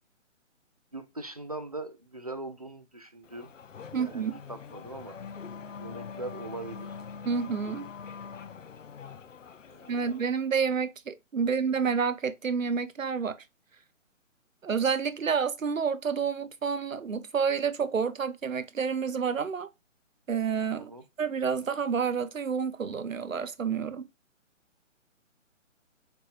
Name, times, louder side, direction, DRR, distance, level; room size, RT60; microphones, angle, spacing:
voice 1, 0.9-3.5 4.0-5.2 5.8-7.0 9.7-10.2 11.4-11.5 20.7-21.0, right 2 dB, 30° right, 0.4 m, -41 dB
Race car auto racing / Accelerating revving vroom, 3.2-10.5, left 6 dB, 75° left, 0.6 m, -44 dB
voice 2, 3.9-4.4 7.2-7.9 9.9-13.4 14.6-19.7 20.3-20.9 21.2-24.0, right 6 dB, 85° right, 0.7 m, -29 dB
4.2 x 3.4 x 2.5 m
figure-of-eight pair, 140°, 39 cm